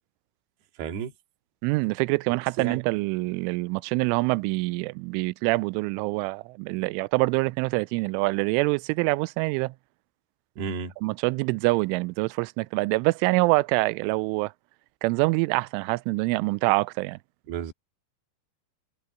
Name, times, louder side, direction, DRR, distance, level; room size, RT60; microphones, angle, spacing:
voice 1, 0.8-1.1 2.3-2.8 10.6-10.9 17.5-17.7, right 7 dB, 60° right, 4.4 m, -32 dB
voice 2, 1.6-9.7 11.0-14.5 15.0-17.2, right 24 dB, 85° right, 3.0 m, -25 dB
omnidirectional pair, 5.6 m